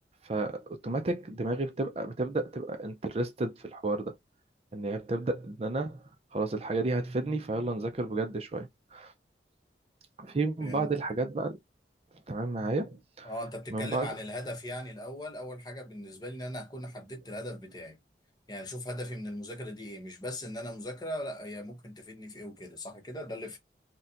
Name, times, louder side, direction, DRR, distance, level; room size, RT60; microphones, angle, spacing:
voice 1, 0.2-4.2 4.7-6.0 6.3-9.1 10.2-11.6 12.3-13.3 13.7-14.1, right 2 dB, 35° right, 0.4 m, -32 dB
voice 2, 10.6-10.9 13.2-18.0 18.5-23.6, left 1 dB, 25° left, 0.8 m, -39 dB
4.0 x 2.2 x 2.4 m
head